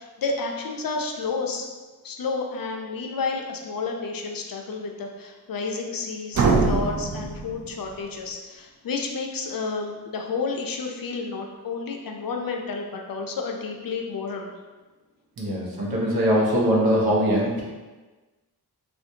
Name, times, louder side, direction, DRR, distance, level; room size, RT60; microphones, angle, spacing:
voice 1, 0.0-1.7 2.0-14.5, left 4 dB, 60° left, 2 dB, 0.5 m, -31 dB
sound 1, 6.3-8.2, right 3 dB, 45° right, 0.5 m, -24 dB
voice 2, 15.4-17.6, equal, 65° right, -5 dB, 1.0 m, -22 dB
3.4 x 2.5 x 2.7 m, 1.3 s
wide cardioid pair, 80°, 39 cm